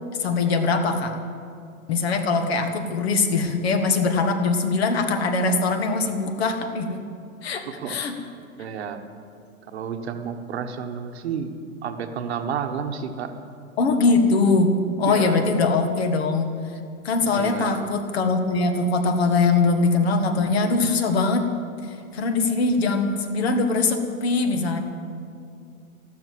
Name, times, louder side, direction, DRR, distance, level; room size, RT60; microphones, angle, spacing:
voice 1, 0.2-1.2 1.9-7.0 7.4-8.1 13.8-16.5 17.0-21.5 21.8-24.8, left 3 dB, 45° left, 7 dB, 1.7 m, -22 dB
voice 2, 8.6-9.0 9.7-11.5 11.8-13.3 15.1-15.5 17.3-17.9, right 7 dB, 50° right, 7 dB, 1.3 m, -31 dB
13.5 x 12.5 x 7.8 m, 2.4 s
hypercardioid pair, 170°, 42 cm